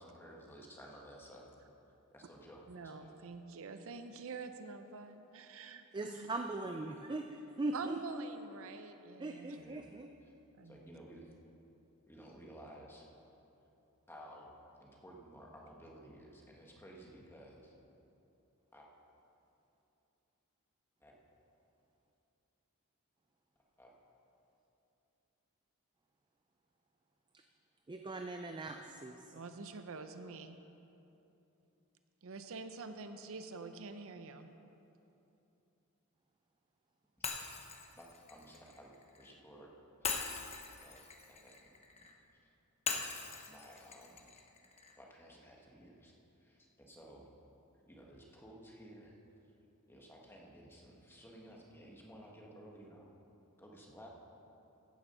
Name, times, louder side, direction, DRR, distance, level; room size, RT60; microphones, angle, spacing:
voice 1, 0.0-1.5 2.1-3.1 6.8-7.0 9.6-9.9 10.6-11.3 12.1-13.1 14.1-17.7 18.7-18.9 21.0-21.1 23.8-23.9 38.0-39.7 40.0-40.1 40.8-41.9 43.5-44.2 44.9-46.1 46.4-47.3 47.9-49.2 49.9-53.1 53.6-54.1, equal, 10° left, -2 dB, 1.4 m, -55 dB
voice 2, 2.7-6.3 7.7-9.7 10.6-10.9 29.3-30.6 32.2-34.5, right 4 dB, 65° right, 8 dB, 0.6 m, -46 dB
voice 3, 5.9-7.3 7.6-8.2 9.2-10.1 27.3-27.4 27.9-29.4, right 2 dB, 20° right, 4 dB, 0.4 m, -40 dB
Shatter, 37.2-39.3 40.0-42.1 42.9-44.9, left 5 dB, 30° left, 0.9 m, -41 dB
15.0 x 7.1 x 5.5 m, 2.9 s
head